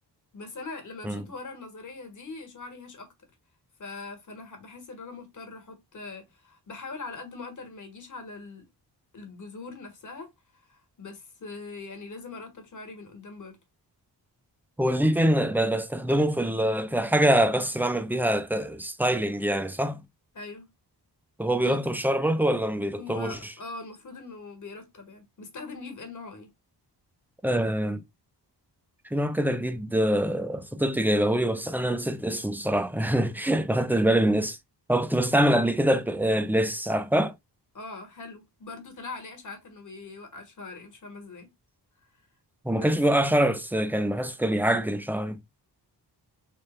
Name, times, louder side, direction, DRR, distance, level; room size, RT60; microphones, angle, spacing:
voice 1, 0.3-3.1 3.8-8.7 9.1-10.3 10.7-13.6 20.3-20.7 21.6-21.8 23.0-26.5 37.7-41.5 42.7-42.9, left 3 dB, 45° left, 1.3 m, -42 dB
voice 2, 14.8-20.0 21.4-23.5 27.4-28.0 29.1-34.6 34.9-37.3 42.6-45.4, right 1 dB, 5° right, 0.3 m, -24 dB
3.4 x 2.2 x 4.1 m
wide cardioid pair, 150°, 42 cm